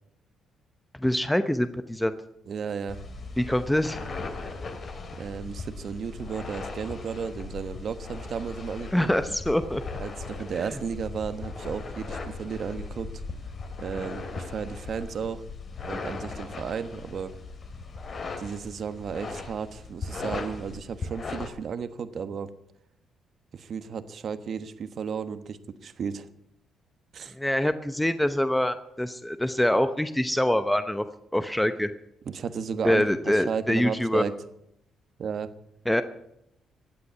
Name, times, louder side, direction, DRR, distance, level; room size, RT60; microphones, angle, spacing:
voice 1, 1.0-2.2 3.4-4.0 8.9-9.8 27.3-31.0 31.3-31.9 32.8-34.2 35.9-36.0, left 1 dB, 5° left, 10 dB, 0.8 m, -25 dB
voice 2, 2.5-3.0 5.2-9.1 10.0-13.1 13.8-15.4 15.8-17.3 18.4-22.5 23.5-26.3 27.1-27.3 32.3-34.3 35.2-35.5, right 6 dB, 55° right, 11 dB, 1.2 m, -34 dB
sound 1, 2.9-21.5, left 3 dB, 45° left, 2.7 m, -38 dB
16.0 x 8.6 x 9.5 m, 0.79 s
cardioid pair, 90°, 0 cm